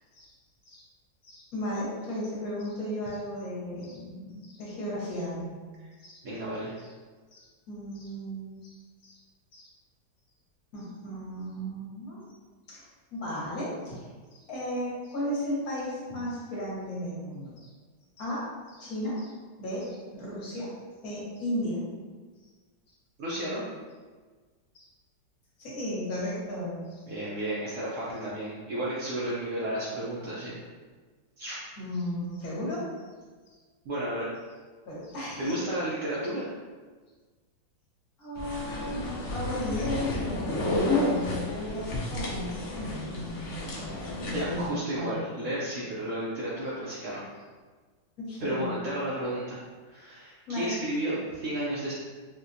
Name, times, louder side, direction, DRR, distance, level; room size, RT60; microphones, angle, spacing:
voice 1, 1.2-5.6 6.0-6.2 7.3-8.8 9.0-9.1 9.5-9.7 10.7-12.2 12.7-14.0 14.5-17.5 18.2-19.3 19.6-20.7 21.0-21.8 24.7-24.9 25.6-27.0 31.8-32.8 34.9-35.6 38.2-43.8 44.2-44.7 45.0-45.2 48.2-48.7 50.5-50.7, equal, 55° left, -7 dB, 1.3 m, -35 dB
voice 2, 6.2-6.7 23.2-23.6 27.1-30.5 31.4-31.6 33.8-34.3 35.4-36.4 44.3-47.2 48.4-49.6 49.9-51.9, right 1 dB, 80° right, -7 dB, 0.6 m, -32 dB
sound 1, 38.4-44.7, left 2 dB, 85° left, 0.6 m, -31 dB
4.0 x 2.2 x 2.5 m, 1.4 s
omnidirectional pair, 2.0 m